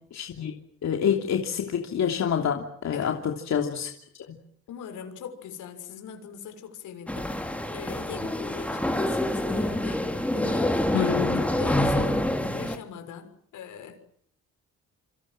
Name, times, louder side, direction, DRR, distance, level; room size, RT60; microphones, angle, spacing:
voice 1, 0.1-0.5 0.8-3.9 4.3-4.4 10.9-11.4, left 8 dB, 60° left, 3 dB, 3.0 m, -27 dB
voice 2, 4.7-14.0, left 8 dB, 80° left, 7 dB, 6.4 m, -41 dB
sound 1, 7.1-12.8, left 1 dB, 5° left, 4.0 m, -26 dB
28.0 x 26.0 x 7.8 m, 0.63 s
cardioid pair, 90°, 30 cm